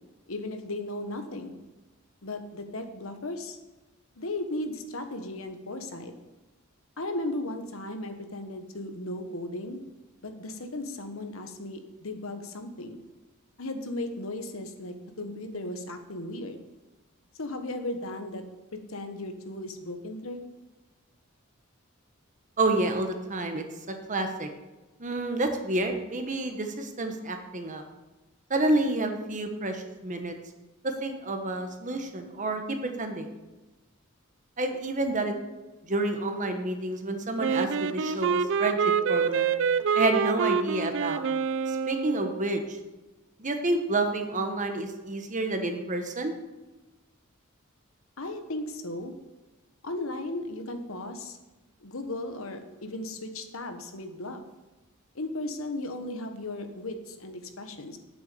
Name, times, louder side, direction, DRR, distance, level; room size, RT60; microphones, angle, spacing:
voice 1, 0.3-1.6 2.2-3.6 4.2-6.1 7.0-9.8 10.2-13.0 13.6-16.6 17.4-18.4 18.7-20.4 48.2-49.1 49.8-51.4 51.8-54.4 55.1-58.0, left 2 dB, 75° left, 7 dB, 1.3 m, -36 dB
voice 2, 22.6-24.5 25.0-27.8 28.5-30.4 30.8-33.3 34.6-35.4 35.8-39.5 39.9-41.2 41.7-42.8 43.4-46.3, right 2 dB, 35° right, 5 dB, 1.3 m, -29 dB
Wind instrument woodwind instrument, 37.4-42.4, right 6 dB, 65° right, 0.5 m, -26 dB
9.3 x 6.9 x 6.9 m, 1.1 s
head